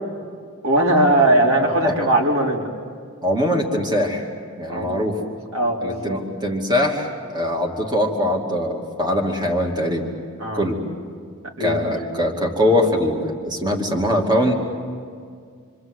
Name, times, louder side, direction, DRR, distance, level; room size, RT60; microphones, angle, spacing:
voice 1, 0.6-2.7 4.7-5.1 5.5-6.2 10.4-10.7 11.6-11.8, right 1 dB, 85° right, -1 dB, 4.0 m, -19 dB
voice 2, 3.2-4.3 4.6-5.2 5.8-10.1 10.5-10.8 11.6-14.5, left 1 dB, 20° right, 1 dB, 2.5 m, -22 dB
28.0 x 25.0 x 8.0 m, 2.1 s
head